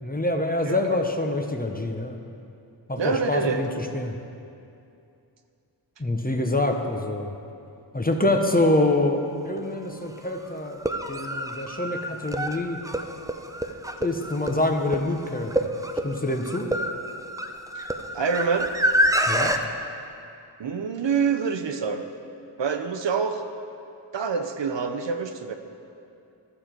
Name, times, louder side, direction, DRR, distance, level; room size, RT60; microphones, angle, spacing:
voice 1, 0.0-2.2 2.9-4.2 6.0-7.3 7.9-10.8 11.1-12.8 14.0-15.7 16.0-16.7 19.3-19.6, left 2 dB, 20° left, 4 dB, 0.8 m, -25 dB
voice 2, 3.0-3.6 17.8-17.9 18.1-18.7 20.6-22.0 22.6-23.4 24.1-25.5, right 5 dB, 70° right, 6 dB, 0.7 m, -26 dB
sound 1, 9.6-9.7 10.7-19.6, right 1 dB, 10° right, 0.5 m, -27 dB
12.5 x 6.9 x 4.5 m, 2.6 s
cardioid pair, 45°, 46 cm